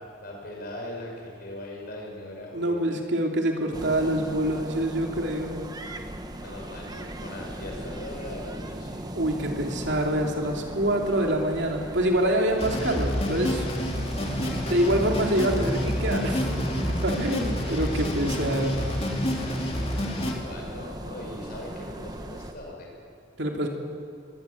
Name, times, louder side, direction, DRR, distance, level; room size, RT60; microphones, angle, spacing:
voice 1, 0.2-2.8 6.4-9.0 17.8-18.3 20.2-22.9, left 1 dB, 50° left, 0 dB, 6.1 m, -40 dB
voice 2, 2.5-5.6 9.1-13.7 14.3-18.8 23.4-23.7, right 1 dB, 60° right, 1 dB, 3.0 m, -26 dB
sound 1, 3.7-22.5, right 1 dB, 20° right, 1.2 m, -38 dB
sound 2, 12.6-20.3, equal, 30° left, 2.6 m, -28 dB
22.5 x 17.5 x 8.5 m, 2.3 s
head